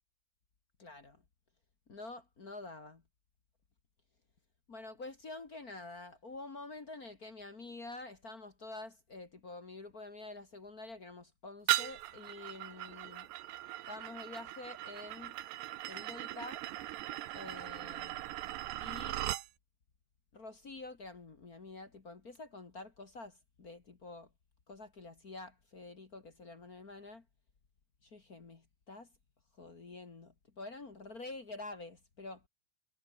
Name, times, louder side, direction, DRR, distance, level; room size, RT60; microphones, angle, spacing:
voice 1, 0.8-1.2 1.9-3.0 4.7-13.3 13.9-15.3 15.9-16.6 17.3-18.2 18.8-19.2 20.3-24.3 24.7-27.2 28.0-29.1 29.6-32.4, left 2 dB, 40° left, 1.4 m, -48 dB
sound 1, 11.7-19.5, right 15 dB, 85° right, 3.3 m, -38 dB
omnidirectional pair, 4.8 m